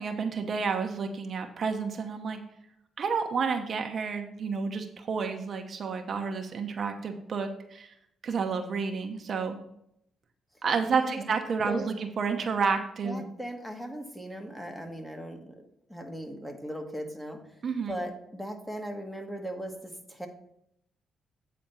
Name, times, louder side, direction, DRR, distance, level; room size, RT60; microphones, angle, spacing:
voice 1, 0.0-2.4 3.0-7.9 8.2-9.6 10.6-13.2 17.6-17.9, right 5 dB, 55° right, 5 dB, 0.9 m, -30 dB
voice 2, 10.8-11.2 11.7-11.9 13.0-17.4 17.9-20.3, equal, 5° left, 3 dB, 1.4 m, -38 dB
8.8 x 4.2 x 5.6 m, 0.75 s
cardioid pair, 80°, 0 cm